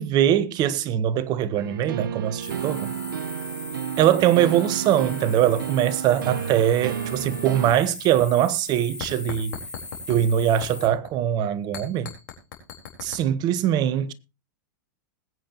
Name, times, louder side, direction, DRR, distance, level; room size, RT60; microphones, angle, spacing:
voice 1, 0.0-2.9 4.0-9.6 10.1-12.1 13.0-14.1, right 11 dB, 40° right, 1.2 m, -22 dB
sound 1, 1.6-7.7, right 9 dB, 75° right, 0.9 m, -32 dB
sound 2, 2.4-10.9, left 3 dB, 10° left, 2.1 m, -39 dB
sound 3, 6.8-7.9 8.2-8.4 9.0-10.2 10.6-11.1 11.7-13.2, left 8 dB, 65° left, 4.3 m, -39 dB
20.5 x 8.9 x 2.9 m
hypercardioid pair, 110°, 11 cm